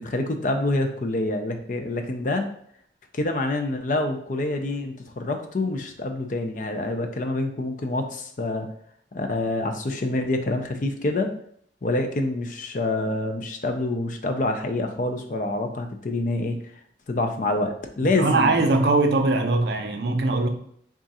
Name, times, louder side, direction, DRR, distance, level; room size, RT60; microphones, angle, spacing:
voice 1, 0.0-2.5 3.1-8.7 9.1-11.3 11.8-16.6 17.1-18.6, left 2 dB, 45° left, 5 dB, 0.4 m, -26 dB
voice 2, 18.2-20.5, right 2 dB, 70° right, 5 dB, 0.5 m, -21 dB
3.6 x 2.4 x 4.1 m, 0.64 s
head